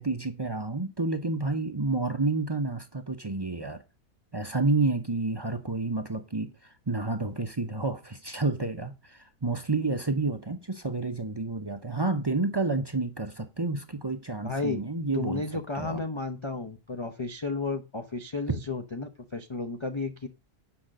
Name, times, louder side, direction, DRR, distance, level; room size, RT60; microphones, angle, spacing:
voice 1, 0.0-3.8 4.3-15.4 15.8-16.0, right 3 dB, 30° right, 0.4 m, -30 dB
voice 2, 14.4-14.8 15.1-20.3, left 3 dB, 35° left, 0.5 m, -33 dB
8.7 x 5.7 x 6.4 m
omnidirectional pair, 1.6 m